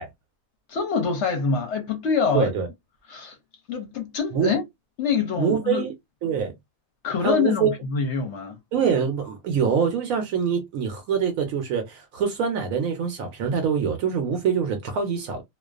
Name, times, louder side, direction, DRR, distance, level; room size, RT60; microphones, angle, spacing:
voice 1, 0.7-2.5 3.1-3.4 3.7-4.6 5.0-5.8 7.0-8.6, left 5 dB, 65° left, 0.8 m, -25 dB
voice 2, 2.3-2.7 4.3-4.5 5.4-5.9 6.2-6.5 7.2-7.7 8.7-15.4, right 7 dB, 75° right, 1.0 m, -24 dB
2.3 x 2.3 x 2.3 m
omnidirectional pair, 1.5 m